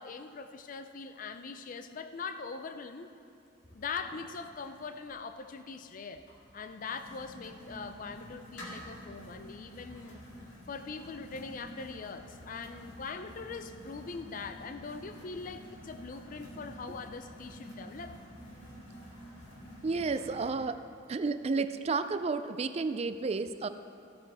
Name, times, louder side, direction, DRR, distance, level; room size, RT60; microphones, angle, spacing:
voice 1, 0.0-3.1 3.7-6.3 6.5-10.2 10.7-18.2, left 4 dB, 45° left, 9 dB, 0.4 m, -42 dB
cross-trainer piezo, 3.6-20.5, equal, 70° left, 2.4 m, -49 dB
voice 2, 19.8-20.8 21.1-23.7, right 4 dB, 35° right, 11 dB, 0.4 m, -31 dB
15.5 x 8.6 x 3.5 m, 2.4 s
head